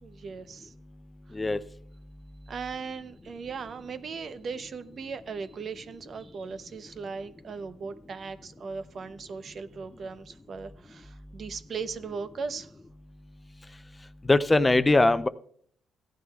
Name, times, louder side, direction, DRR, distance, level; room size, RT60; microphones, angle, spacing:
voice 1, 0.0-0.7 2.5-12.7, right 5 dB, 50° right, 11 dB, 0.7 m, -38 dB
voice 2, 14.3-15.3, left 2 dB, 20° left, 13 dB, 0.5 m, -21 dB
15.5 x 11.0 x 2.4 m, 0.63 s
cardioid pair, 90°, 0 cm